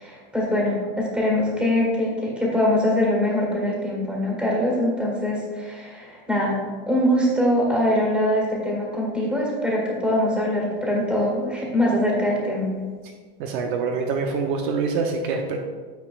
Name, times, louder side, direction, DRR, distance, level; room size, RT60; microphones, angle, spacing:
voice 1, 0.0-6.6 6.9-12.7, left 1 dB, 5° right, -3 dB, 1.8 m, -23 dB
voice 2, 13.4-15.6, right 4 dB, 60° right, 3 dB, 0.7 m, -25 dB
9.1 x 4.6 x 2.3 m, 1.5 s
supercardioid pair, 130°, 29 cm